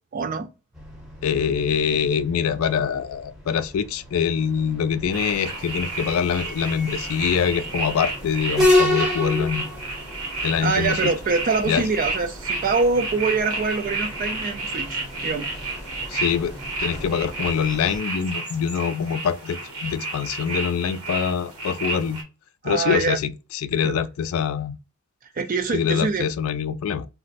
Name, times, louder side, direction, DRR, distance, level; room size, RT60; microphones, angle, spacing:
voice 1, 0.1-0.5 10.6-15.5 22.6-23.2 23.8-24.0 25.4-26.3, right 4 dB, 40° right, 0.3 m, -24 dB
sound 1, 0.7-18.0, left 1 dB, ahead, 0.7 m, -30 dB
voice 2, 1.2-9.7 10.4-11.1 11.7-11.8 16.1-16.5 16.8-22.2 22.6-23.3 23.6-24.8 25.7-27.1, left 7 dB, 70° left, 0.3 m, -24 dB
sound 2, 5.1-22.2, right 3 dB, 80° right, 1.1 m, -31 dB
2.5 x 2.0 x 3.9 m
head